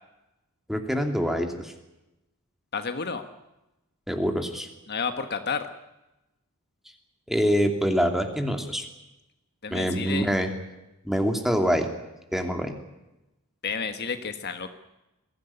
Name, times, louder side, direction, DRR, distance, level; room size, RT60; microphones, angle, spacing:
voice 1, 0.7-1.7 4.1-4.7 7.3-8.8 9.7-10.5 11.0-11.9 12.3-12.7, equal, ahead, 4 dB, 2.8 m, -25 dB
voice 2, 2.7-3.2 4.9-5.7 9.6-10.3 13.6-14.7, left 5 dB, 50° left, 8 dB, 1.5 m, -30 dB
22.5 x 16.0 x 10.0 m, 0.96 s
head